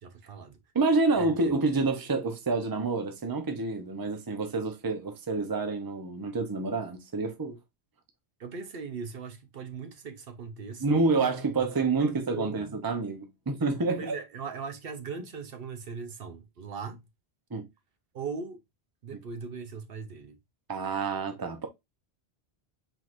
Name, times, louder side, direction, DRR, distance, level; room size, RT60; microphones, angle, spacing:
voice 1, 0.0-0.6 1.1-1.3 8.4-11.7 12.0-12.6 14.0-17.0 18.1-18.6 19.0-20.4, right 5 dB, 60° right, 1.0 m, -39 dB
voice 2, 0.7-7.6 10.8-14.1 17.5-17.7 20.7-21.7, right 3 dB, 25° right, 0.7 m, -28 dB
4.6 x 4.0 x 2.5 m
omnidirectional pair, 1.1 m